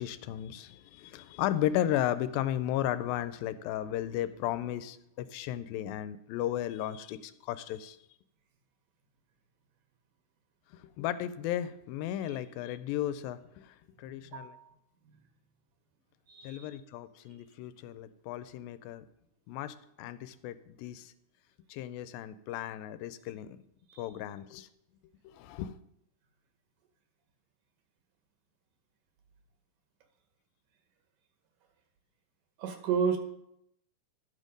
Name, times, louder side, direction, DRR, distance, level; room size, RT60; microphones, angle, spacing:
voice 1, 0.0-8.0 11.0-14.5 16.4-19.1 19.5-21.1 21.7-23.6 24.0-24.7 25.3-25.8, left 12 dB, 85° left, 13 dB, 2.3 m, -35 dB
voice 2, 14.2-14.7 16.3-16.7 23.9-24.1 32.6-33.2, right 6 dB, 70° right, 5 dB, 2.5 m, -32 dB
11.5 x 6.4 x 5.1 m, 0.78 s
omnidirectional pair, 4.1 m